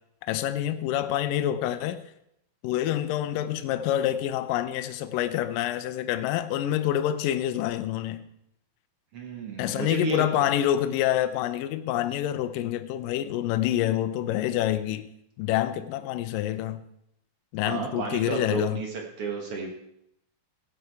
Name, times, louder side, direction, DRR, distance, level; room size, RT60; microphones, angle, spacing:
voice 1, 0.2-2.0 2.6-8.3 9.6-15.1 15.4-16.8 17.5-18.8, left 12 dB, 80° left, 10 dB, 2.2 m, -27 dB
voice 2, 9.1-10.4 17.6-18.9 19.2-19.7, right 4 dB, 55° right, 2 dB, 1.7 m, -32 dB
16.0 x 8.7 x 4.6 m, 0.77 s
omnidirectional pair, 4.1 m